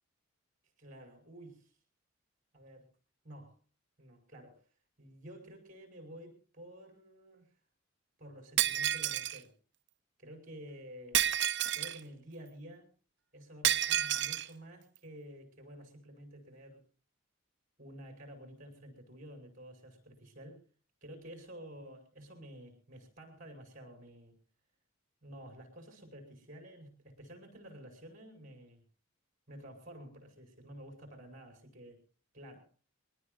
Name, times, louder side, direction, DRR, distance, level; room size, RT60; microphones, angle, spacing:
voice 1, 0.8-1.7 2.5-2.9 3.2-3.5 4.0-4.6 5.0-7.5 8.2-9.5 10.2-11.3 11.7-12.9 13.3-16.8 17.8-20.6 21.0-24.4 25.2-28.8 29.5-32.0 32.3-32.7, right 1 dB, 40° right, 5 dB, 6.5 m, -51 dB
Shatter, 8.6-9.4 11.1-12.0 13.6-14.5, right 11 dB, 55° right, 0.8 m, -30 dB
23.5 x 19.0 x 2.7 m, 0.37 s
head